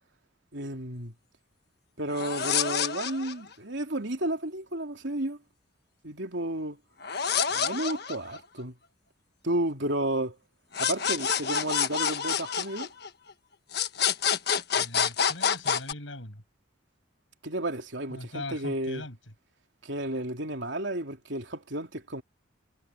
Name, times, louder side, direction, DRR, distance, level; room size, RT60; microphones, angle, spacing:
voice 1, 0.5-1.1 2.0-5.4 6.0-6.8 7.5-8.8 9.4-10.4 10.8-12.9 17.4-19.0 19.8-22.2, right 1 dB, 65° right, 3.4 m, -32 dB
sound 1, 2.1-3.5 7.0-8.6 10.7-13.3 13.7-15.9, left 7 dB, 55° left, 1.4 m, -28 dB
voice 2, 14.8-16.4 18.1-19.2, left 2 dB, 75° left, 7.8 m, -40 dB
head